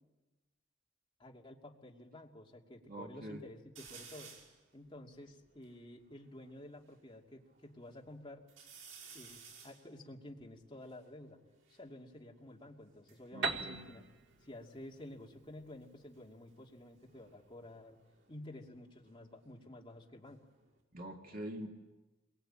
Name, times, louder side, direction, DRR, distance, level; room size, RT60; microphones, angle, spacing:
voice 1, 1.2-4.3 4.7-8.5 9.1-11.4 11.7-14.0 14.4-18.0 18.3-20.5, left 1 dB, 25° left, 0 dB, 2.6 m, -51 dB
voice 2, 2.9-3.4 13.3-13.9 20.9-21.7, right 1 dB, 50° right, 2 dB, 2.1 m, -45 dB
sound 1, 3.8-4.6 5.2-5.3 5.4-7.0 7.5-8.1 8.5-11.9 12.8-14.7 15.0-15.5 17.0-19.7 20.0-20.8, right 6 dB, 85° right, 5.7 m, -57 dB
Piano, 13.4-17.1, right 4 dB, 65° right, 1.8 m, -42 dB
27.0 x 23.0 x 8.9 m, 1.1 s
head